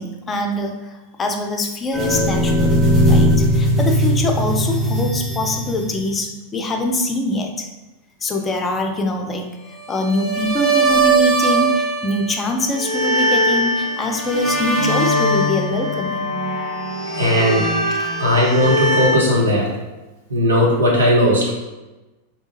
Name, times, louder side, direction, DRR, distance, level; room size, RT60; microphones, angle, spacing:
voice 1, 0.0-7.7 8.2-9.5 9.9-16.3 17.9-18.1, left 1 dB, 20° left, 3 dB, 0.5 m, -23 dB
sound 1, 1.9-6.2 10.0-12.3 12.6-19.2, right 1 dB, 20° right, 1.5 m, -19 dB
voice 2, 17.1-17.7 18.2-19.7 20.3-21.5, equal, 75° right, -3 dB, 0.9 m, -16 dB
3.5 x 2.7 x 2.8 m, 1.1 s
figure-of-eight pair, 90°, 0 cm